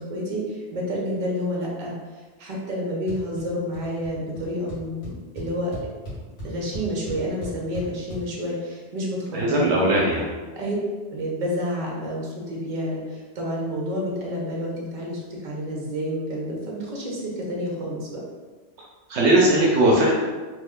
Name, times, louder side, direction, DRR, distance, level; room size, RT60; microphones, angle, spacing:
voice 1, 0.0-1.9 2.4-5.1 5.3-5.7 6.4-9.7 10.5-10.7 11.1-18.2, equal, 50° right, -4 dB, 0.9 m, -29 dB
sound 1, 3.1-3.4 3.7-4.1 4.4-4.5 4.7-8.2, left 1 dB, 85° left, 1.5 m, -36 dB
voice 2, 9.3-10.3 19.1-20.1, right 1 dB, 75° right, -3 dB, 0.9 m, -19 dB
3.2 x 2.2 x 3.5 m, 1.4 s
omnidirectional pair, 1.2 m